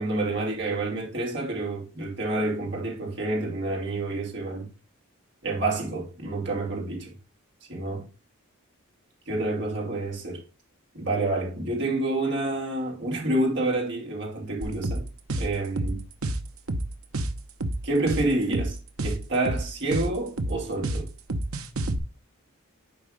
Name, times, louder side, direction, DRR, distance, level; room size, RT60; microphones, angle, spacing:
voice 1, 0.0-4.7 5.4-7.1 7.7-8.1 9.3-10.4 10.9-15.0 15.4-16.0 17.8-21.1, right 2 dB, 55° right, 2.8 m, -28 dB
sound 1, 14.6-22.0, right 1 dB, 80° right, 0.9 m, -29 dB
8.6 x 5.1 x 3.2 m
head